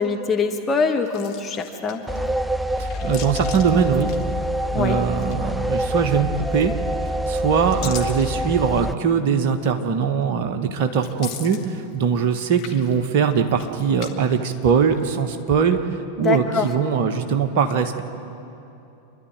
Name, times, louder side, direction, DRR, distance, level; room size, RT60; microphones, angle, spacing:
voice 1, 0.0-2.0 4.7-5.0 16.2-16.7, left 4 dB, 20° left, 2 dB, 1.4 m, -23 dB
sound 1, 1.0-2.3 2.7-4.7 5.0-5.7 6.5-7.0 7.4-9.0 9.6-9.7 11.0-12.2 12.5-14.1 14.4-15.2, left 9 dB, 40° left, 1.8 m, -39 dB
sound 2, 2.1-8.9, equal, 5° right, 0.5 m, -25 dB
voice 2, 2.8-4.1 4.7-6.7 7.3-15.8 16.2-18.0, right 6 dB, 45° right, 6 dB, 1.4 m, -21 dB
28.0 x 11.5 x 9.1 m, 2.8 s
figure-of-eight pair, 90°, 0 cm